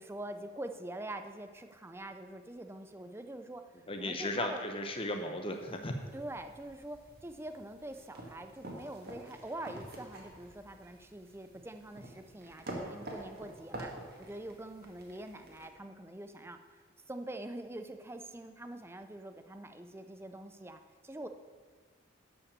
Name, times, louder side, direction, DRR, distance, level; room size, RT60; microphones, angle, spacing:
voice 1, 0.0-4.7 6.1-13.9 14.2-16.8 17.1-21.3, right 1 dB, 10° right, 8 dB, 0.5 m, -45 dB
voice 2, 3.9-5.9, left 1 dB, 25° left, 5 dB, 0.8 m, -35 dB
sound 1, 5.5-15.7, right 1 dB, 50° right, 1.9 m, -48 dB
12.0 x 5.7 x 6.8 m, 1.5 s
head